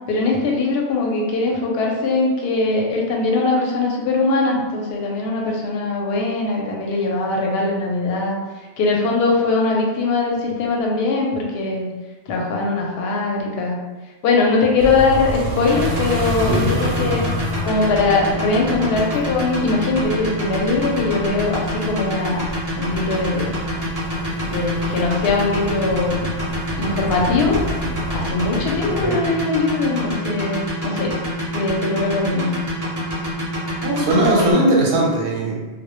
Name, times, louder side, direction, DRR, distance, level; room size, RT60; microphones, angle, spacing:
voice 1, 0.1-8.4 8.8-11.9 12.3-13.8 14.2-17.3 17.6-22.4 22.8-23.5 24.5-26.3 26.8-27.5 28.1-31.1 31.5-32.6, left 3 dB, 65° left, -1 dB, 0.7 m, -21 dB
sound 1, 14.8-29.1, equal, 90° right, 0.9 m, -30 dB
sound 2, 15.7-34.5, left 1 dB, 20° right, 0.5 m, -26 dB
voice 2, 33.8-35.7, right 1 dB, 60° right, -3 dB, 0.7 m, -19 dB
2.1 x 2.1 x 2.9 m, 1.3 s
omnidirectional pair, 1.3 m